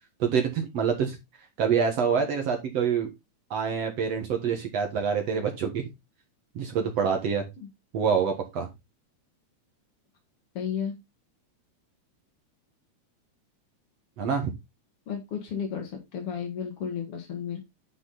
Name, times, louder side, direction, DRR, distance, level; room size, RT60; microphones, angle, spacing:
voice 1, 0.2-1.2 1.6-3.1 3.5-5.8 6.6-7.5 7.9-8.7 14.2-14.5, right 6 dB, 60° right, 3 dB, 2.5 m, -26 dB
voice 2, 10.6-10.9 15.1-17.6, left 7 dB, 55° left, 2 dB, 2.7 m, -33 dB
9.8 x 6.0 x 4.1 m, 0.23 s
omnidirectional pair, 3.4 m